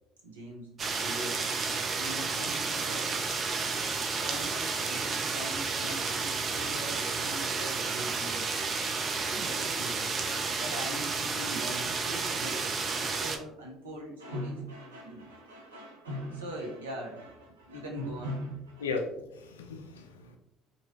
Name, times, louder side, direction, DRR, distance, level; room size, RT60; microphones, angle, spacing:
voice 1, 0.2-1.4 2.0-3.1 4.2-8.5 9.2-10.1 10.6-12.7 12.9-18.9, equal, 85° right, -1 dB, 0.7 m, -41 dB
sound 1, 0.8-13.4, right 4 dB, 40° right, 0.4 m, -31 dB
voice 2, 18.8-20.4, left 4 dB, 85° left, 5 dB, 0.4 m, -36 dB
2.8 x 2.6 x 2.8 m, 0.82 s
hypercardioid pair, 60°, 0 cm